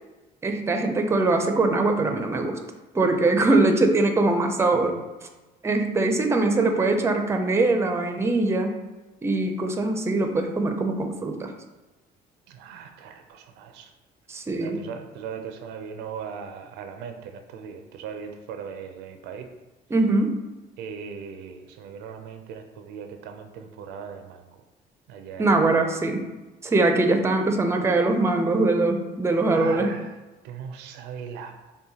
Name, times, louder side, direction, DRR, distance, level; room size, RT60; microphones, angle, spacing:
voice 1, 0.4-2.6 2.9-4.9 5.6-8.8 9.2-11.5 14.3-14.8 19.9-20.4 25.4-26.3 26.6-30.0, right 2 dB, 15° right, 5 dB, 0.4 m, -22 dB
voice 2, 12.5-13.9 14.6-19.5 20.8-24.6 25.1-25.9 29.5-30.1 30.4-31.5, right 7 dB, 90° right, 6 dB, 0.4 m, -39 dB
5.6 x 2.2 x 2.8 m, 1.1 s
cardioid pair, 110°, 17 cm